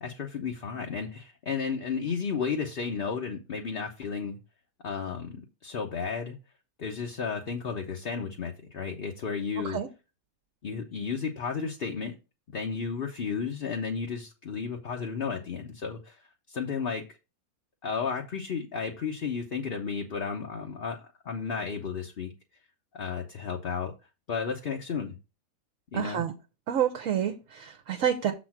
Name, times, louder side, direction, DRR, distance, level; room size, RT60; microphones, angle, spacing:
voice 1, 0.0-4.4 4.8-6.4 6.8-9.8 10.6-12.2 12.5-17.0 17.8-22.3 22.9-23.9 24.3-25.2 25.9-26.2, left 6 dB, 45° left, 0.9 m, -33 dB
voice 2, 25.9-26.3 26.7-28.3, right 9 dB, 65° right, 1.1 m, -28 dB
6.9 x 4.2 x 5.9 m
omnidirectional pair, 1.5 m